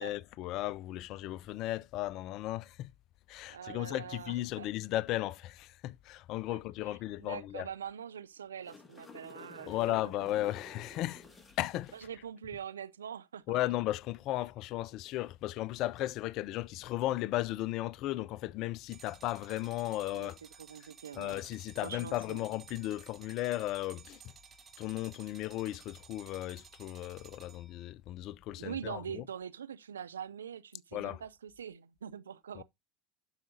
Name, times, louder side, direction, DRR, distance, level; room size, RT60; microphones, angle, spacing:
voice 1, 0.0-2.9 3.3-7.7 9.7-11.2 11.6-11.9 13.5-20.4 21.1-24.2 24.8-29.2 30.9-31.2 32.6-32.7, left 15 dB, 55° left, 0.4 m, -35 dB
voice 2, 3.5-4.7 6.5-6.6 6.9-10.0 11.9-13.6 20.1-20.3 20.6-21.4 21.8-22.4 28.5-32.6, right 8 dB, 85° right, 0.5 m, -44 dB
sound 1, 8.4-12.0 15.8-16.0, left 3 dB, 15° left, 2.0 m, -52 dB
sound 2, 18.9-27.9, right 7 dB, 30° right, 1.3 m, -56 dB
12.0 x 4.9 x 2.7 m
hypercardioid pair, 75°, 0 cm